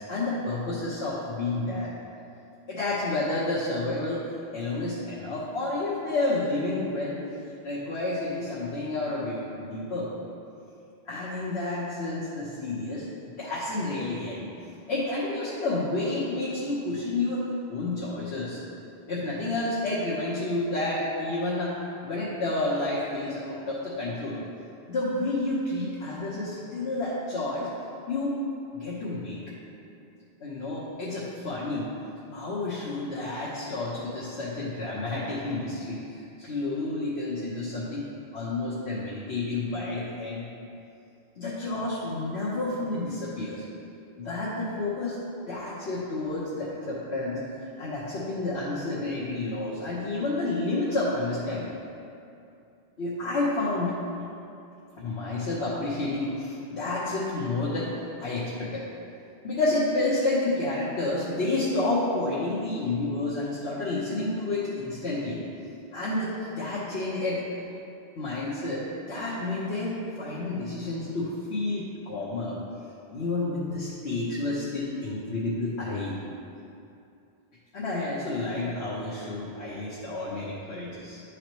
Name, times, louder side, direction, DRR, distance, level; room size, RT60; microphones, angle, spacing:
voice 1, 0.0-1.9 2.7-4.3 4.5-7.2 7.6-10.1 11.1-18.6 19.1-21.8 22.0-24.4 24.9-27.7 28.1-28.4 28.7-29.5 30.4-31.9 32.3-38.1 38.3-40.5 41.4-43.6 44.2-45.2 45.5-47.4 47.8-51.7 53.0-54.0 55.0-58.9 59.4-65.4 65.9-67.4 68.2-72.6 73.1-76.2 77.7-81.2, left 2 dB, 85° left, -8 dB, 1.3 m, -30 dB
11.5 x 4.8 x 3.1 m, 2.7 s
omnidirectional pair, 1.1 m